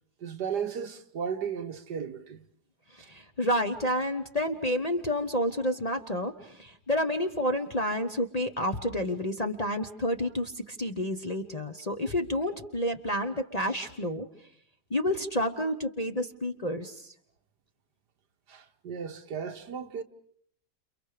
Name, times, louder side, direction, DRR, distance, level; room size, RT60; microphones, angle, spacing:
voice 1, 0.2-2.5 18.5-20.0, right 7 dB, 70° right, 1.8 m, -35 dB
voice 2, 2.9-14.3 14.9-17.1, equal, 25° left, 1.0 m, -30 dB
29.5 x 29.0 x 5.0 m
omnidirectional pair, 1.9 m